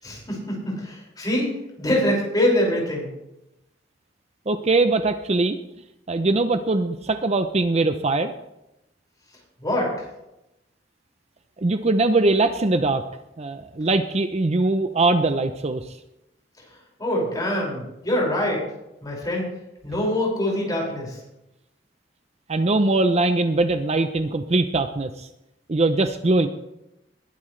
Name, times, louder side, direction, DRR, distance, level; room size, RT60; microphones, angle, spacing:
voice 1, 0.0-3.1 9.6-10.1 17.0-18.6 19.0-19.4 19.8-21.2, left 1 dB, 20° left, -3 dB, 5.6 m, -24 dB
voice 2, 4.5-5.6 6.1-8.3 11.6-13.0 13.4-16.0 22.5-25.3 25.7-26.5, right 2 dB, 35° right, 9 dB, 0.6 m, -21 dB
21.0 x 11.5 x 3.3 m, 0.89 s
head